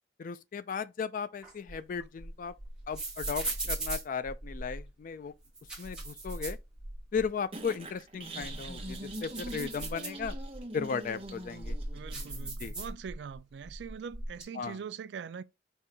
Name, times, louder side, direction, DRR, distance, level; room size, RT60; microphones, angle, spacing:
voice 1, 0.2-2.5 2.9-5.3 5.8-6.6 7.1-10.4 10.7-11.8 12.6-12.7 14.6-14.8, left 6 dB, 45° left, 0.3 m, -36 dB
sound 1, 1.4-4.9 5.4-7.3 7.6-7.7 8.2-10.6 11.2-13.4 13.6-14.4, right 2 dB, 5° right, 1.5 m, -38 dB
sound 2, 7.5-12.5, right 1 dB, 30° right, 0.9 m, -43 dB
voice 2, 11.9-15.4, right 6 dB, 70° right, 0.3 m, -42 dB
5.4 x 2.7 x 3.4 m
head